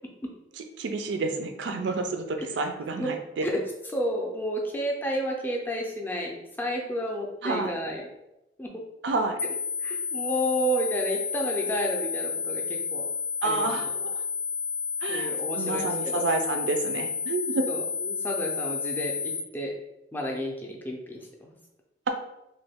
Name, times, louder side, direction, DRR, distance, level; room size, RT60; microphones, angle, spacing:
voice 1, 0.6-3.5 7.4-7.7 9.0-9.4 13.4-13.9 15.0-17.7, right 3 dB, 85° right, 6 dB, 0.4 m, -29 dB
voice 2, 3.9-8.1 8.6-8.7 9.8-13.1 13.4-13.9 15.1-16.3 17.7-19.7 20.1-21.5, equal, 10° left, -1 dB, 0.4 m, -31 dB
sound 1, 9.4-19.4, left 6 dB, 80° left, 0.5 m, -31 dB
3.0 x 2.2 x 3.4 m, 0.90 s
head